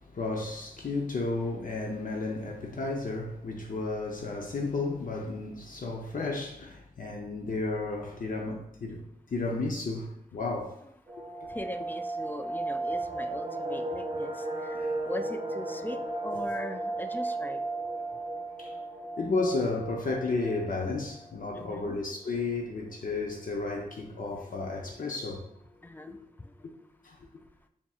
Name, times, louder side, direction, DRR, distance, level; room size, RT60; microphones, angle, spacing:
voice 1, 0.0-10.8 14.7-14.9 18.6-18.7 19.2-25.5 27.0-27.2, left 3 dB, 60° left, 0.6 m, -33 dB
sound 1, 11.1-21.9 22.2-22.3 22.6-22.8 23.2-23.7 24.2-24.3 24.5-25.0 25.3-25.4, right 2 dB, 30° right, 0.8 m, -35 dB
voice 2, 11.5-14.3 14.7-17.6 21.5-22.0 25.8-26.2, left 1 dB, 10° left, 0.4 m, -40 dB
4.1 x 3.6 x 2.4 m
cardioid pair, 50°, 15 cm